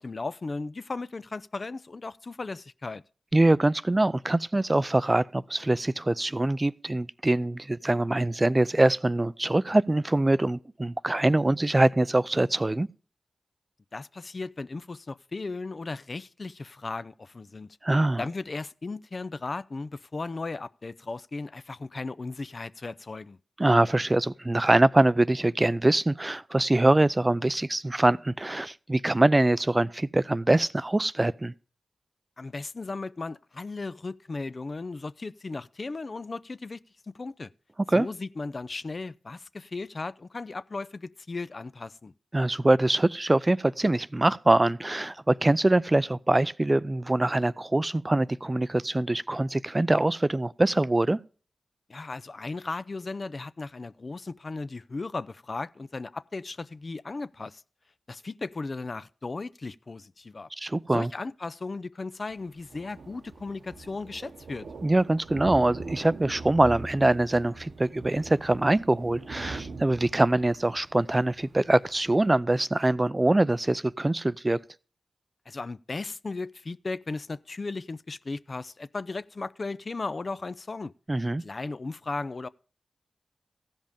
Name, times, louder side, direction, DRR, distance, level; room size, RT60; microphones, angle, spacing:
voice 1, 0.0-3.0 13.9-17.8 18.2-23.4 32.4-36.8 37.1-37.5 37.9-42.1 51.9-57.6 58.1-60.5 60.9-64.7 75.5-80.9 81.4-82.5, left 3 dB, 50° left, 0.4 m, -36 dB
voice 2, 3.3-12.9 17.8-18.2 23.6-31.5 37.9-38.1 42.3-51.2 60.6-61.1 64.8-74.6 81.1-81.4, right 2 dB, 30° right, 0.4 m, -23 dB
Thunder, 62.3-72.3, right 3 dB, 80° right, 1.0 m, -42 dB
14.5 x 5.4 x 5.1 m
cardioid pair, 40°, 0 cm